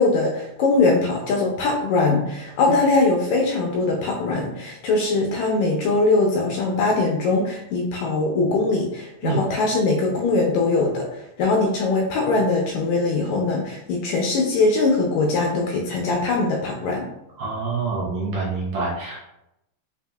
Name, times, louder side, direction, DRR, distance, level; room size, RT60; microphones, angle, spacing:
voice 1, 0.0-17.1, left 3 dB, 80° left, 0 dB, 1.7 m, -21 dB
voice 2, 17.4-19.2, right 4 dB, 70° right, -5 dB, 1.9 m, -26 dB
5.3 x 2.6 x 2.3 m, 0.85 s
omnidirectional pair, 3.6 m